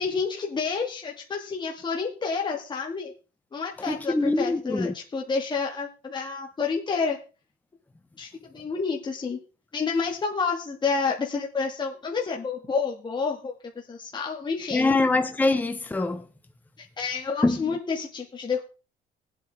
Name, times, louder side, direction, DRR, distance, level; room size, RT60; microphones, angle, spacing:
voice 1, 0.0-3.1 3.5-7.2 8.2-9.4 9.7-14.9 16.8-18.6, left 5 dB, 25° left, 2.0 m, -29 dB
voice 2, 3.9-4.9 14.7-16.2 17.4-17.6, left 2 dB, 10° left, 0.9 m, -24 dB
20.0 x 8.4 x 3.5 m
cardioid pair, 110°, 17 cm